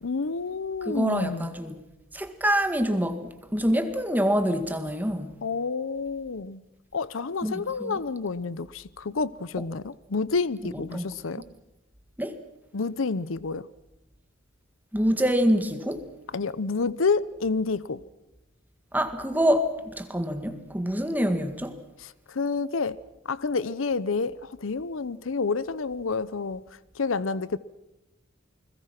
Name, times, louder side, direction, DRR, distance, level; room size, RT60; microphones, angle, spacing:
voice 1, 0.0-1.5 5.4-6.6 6.9-11.4 12.7-13.7 16.3-18.0 22.0-26.6 26.9-27.6, left 4 dB, 80° left, 0.7 m, -29 dB
voice 2, 0.9-1.8 2.1-5.4 7.4-8.0 9.6-9.7 10.7-11.1 11.3-11.4 12.2-12.4 14.9-16.0 18.9-21.8, equal, 10° right, 1.9 m, -26 dB
29.5 x 21.0 x 6.0 m
head